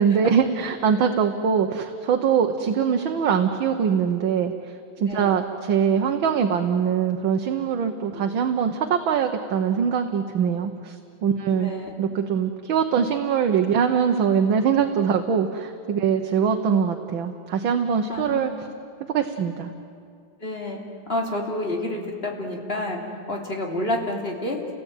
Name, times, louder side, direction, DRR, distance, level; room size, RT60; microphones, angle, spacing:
voice 1, 0.0-4.5 5.0-11.0 11.2-11.7 12.0-18.5 19.1-19.7, right 7 dB, 75° right, 4 dB, 1.8 m, -22 dB
voice 2, 5.1-5.4 8.1-8.2 11.5-11.9 18.1-18.5 20.4-20.8 21.1-23.0 23.3-24.7, left 1 dB, 30° left, 0 dB, 3.3 m, -29 dB
30.0 x 18.0 x 9.0 m, 2.4 s
omnidirectional pair, 2.2 m